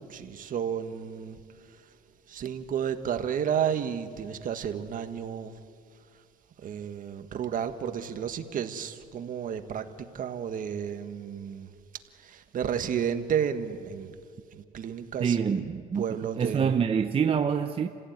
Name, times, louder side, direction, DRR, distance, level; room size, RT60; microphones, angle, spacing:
voice 1, 0.0-1.9 2.3-5.6 6.6-11.7 12.1-14.2 14.5-15.6 15.9-16.7, right 8 dB, 55° right, 1.7 m, -32 dB
voice 2, 15.2-16.1 16.4-17.9, right 7 dB, 35° right, 0.8 m, -26 dB
29.5 x 16.5 x 9.5 m
cardioid pair, 110°, 17 cm